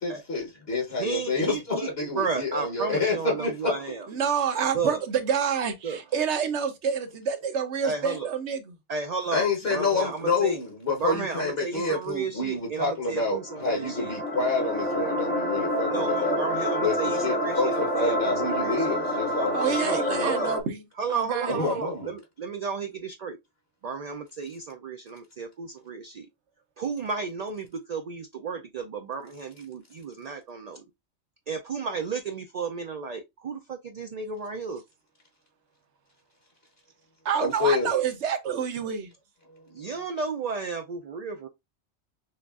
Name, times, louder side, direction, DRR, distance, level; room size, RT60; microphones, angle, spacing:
voice 1, 0.0-3.7 9.3-16.3 16.8-20.3 21.5-22.1 37.4-37.9, left 3 dB, 60° left, 1.3 m, -28 dB
voice 2, 0.9-4.1 4.7-5.0 5.8-6.0 7.8-8.3 8.9-10.6 11.0-14.1 15.9-19.0 19.8-20.5 21.0-23.4 23.8-26.3 26.8-30.9 31.5-34.8 39.7-41.5, right 5 dB, 65° right, 0.4 m, -33 dB
voice 3, 4.1-8.6 19.5-20.7 21.1-21.5 37.2-39.1, right 7 dB, 80° right, 1.1 m, -28 dB
sound 1, 13.4-20.6, equal, 15° left, 0.4 m, -28 dB
6.3 x 2.4 x 2.4 m
omnidirectional pair, 1.2 m